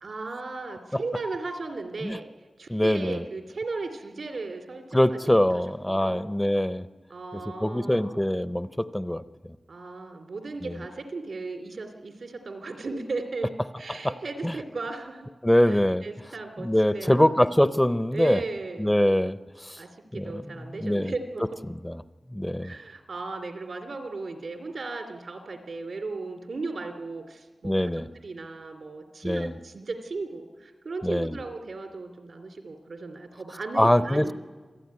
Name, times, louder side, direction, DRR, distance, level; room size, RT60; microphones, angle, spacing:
voice 1, 0.0-2.3 2.6-5.2 5.5-6.3 7.1-8.2 9.7-15.3 15.6-17.5 18.1-19.0 19.8-21.5 22.6-34.3, right 3 dB, 80° right, 5 dB, 2.9 m, -36 dB
voice 2, 2.7-3.2 4.9-6.9 7.6-9.2 10.7-10.8 13.9-14.2 14.4-14.5 15.4-16.1 16.6-18.4 18.8-19.8 20.1-20.4 20.8-21.1 21.8-22.0 22.3-22.7 27.6-28.1 29.2-29.5 31.0-31.4 33.8-34.3, left 1 dB, 10° left, 13 dB, 0.6 m, -23 dB
26.5 x 16.0 x 9.6 m, 1.4 s
wide cardioid pair, 100°, 0 cm